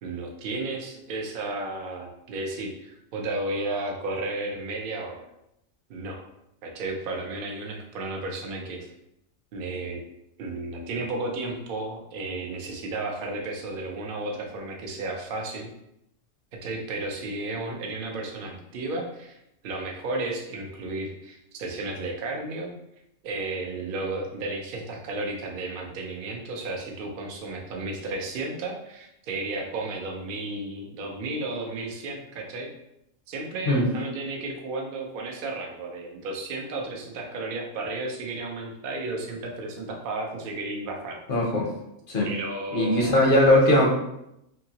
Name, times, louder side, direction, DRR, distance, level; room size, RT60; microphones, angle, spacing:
voice 1, 0.0-5.2 5.9-6.2 6.6-8.9 9.5-10.0 10.4-15.7 16.5-19.4 19.6-22.7 23.2-32.7 33.3-41.2 42.2-43.2, right 2 dB, 55° right, 1 dB, 0.6 m, -33 dB
voice 2, 41.3-41.7 42.1-42.3 42.7-43.9, left 1 dB, 55° left, -2 dB, 0.6 m, -19 dB
2.7 x 2.7 x 2.8 m, 0.82 s
omnidirectional pair, 1.5 m